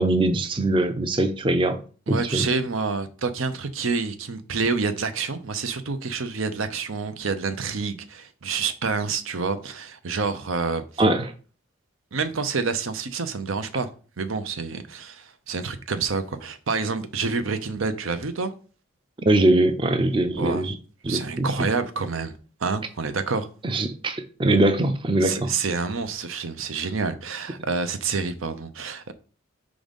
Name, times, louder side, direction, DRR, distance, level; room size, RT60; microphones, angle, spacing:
voice 1, 0.0-1.8 2.1-2.5 11.0-11.3 19.3-20.7 21.0-21.5 23.6-25.5, right 1 dB, 25° right, 0.5 m, -22 dB
voice 2, 2.1-10.8 12.1-13.9 14.2-18.5 20.4-20.6 21.1-22.3 22.6-23.5 25.2-29.1, right 4 dB, 85° right, 0.7 m, -28 dB
4.9 x 3.9 x 5.2 m
head